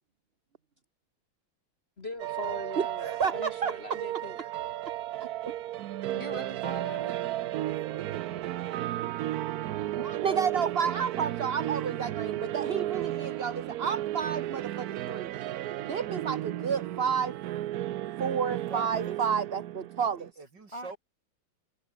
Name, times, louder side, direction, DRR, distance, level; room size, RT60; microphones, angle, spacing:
voice 1, 2.0-4.4, left 2 dB, 30° left, 1.7 m, -41 dB
sound 1, 2.2-20.3, right 13 dB, 85° right, 0.8 m, -34 dB
voice 2, 3.0-3.7 5.2-5.5 9.9-15.3 15.8-17.3 18.2-20.3, right 6 dB, 35° right, 1.2 m, -31 dB
voice 3, 6.1-7.1 20.7-20.9, right 1 dB, 15° left, 2.2 m, -41 dB
voice 4, 7.9-8.6 18.4-19.2 20.2-21.0, right 3 dB, 55° right, 4.2 m, -45 dB
omnidirectional pair, 2.4 m